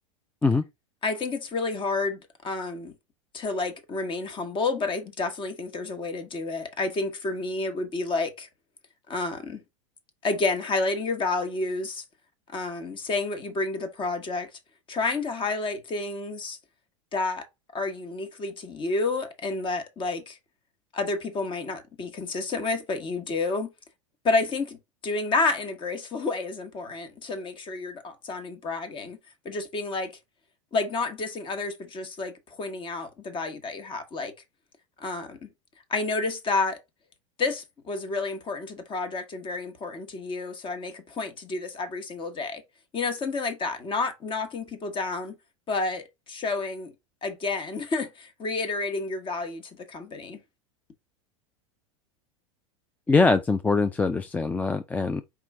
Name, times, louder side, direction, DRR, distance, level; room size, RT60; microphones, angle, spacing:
voice 1, 1.0-2.9 3.3-8.5 9.1-9.6 10.2-12.0 12.5-14.5 14.9-16.6 17.1-17.5 17.7-20.4 20.9-23.7 24.2-24.8 25.0-29.2 29.4-30.1 30.7-34.3 35.0-35.5 35.9-36.8 37.4-42.6 42.9-45.3 45.7-46.9 47.2-50.4, left 3 dB, 30° left, 1.3 m, -30 dB
voice 2, 53.1-55.2, left 3 dB, 10° left, 0.3 m, -23 dB
4.6 x 3.1 x 3.6 m
hypercardioid pair, 90°, 17 cm